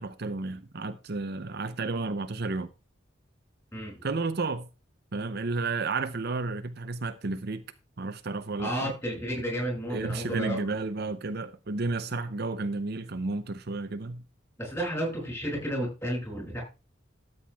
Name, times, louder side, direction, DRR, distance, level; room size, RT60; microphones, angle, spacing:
voice 1, 0.0-2.7 4.0-4.7 5.1-7.6 8.0-8.9 9.9-14.2, right 3 dB, 55° right, 0.7 m, -32 dB
voice 2, 8.6-10.8 14.6-16.6, equal, 15° left, 6.8 m, -32 dB
13.0 x 7.9 x 3.5 m
head